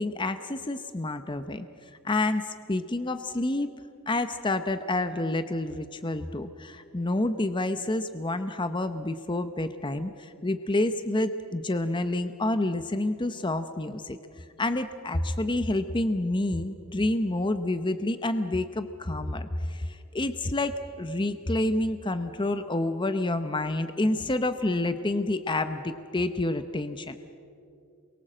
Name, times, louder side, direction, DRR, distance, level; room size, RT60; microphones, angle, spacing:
voice 1, 0.0-3.7 4.1-27.2, left 2 dB, 20° left, 10 dB, 0.7 m, -28 dB
28.5 x 23.5 x 7.6 m, 2.6 s
head